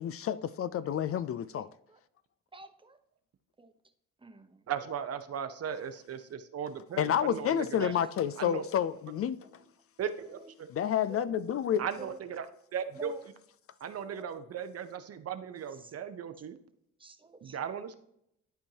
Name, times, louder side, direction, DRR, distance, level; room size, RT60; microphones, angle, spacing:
voice 1, 0.0-1.7 7.0-9.5 10.7-11.8, left 9 dB, 50° left, 0.4 m, -29 dB
voice 2, 2.5-3.0 3.6-3.7 4.2-4.6 7.8-8.0 10.4-10.5 11.0-11.2 11.5-11.6 12.0-12.2 13.0-13.2 14.0-14.3 15.8-15.9 17.0-17.6, right 2 dB, 15° right, 0.9 m, -48 dB
voice 3, 4.7-7.9 8.4-8.6 10.0-10.7 11.8-12.5 12.7-13.1 13.8-16.6 17.4-17.9, right 8 dB, 55° right, 0.8 m, -37 dB
11.5 x 4.5 x 2.8 m
cardioid pair, 90°, 30 cm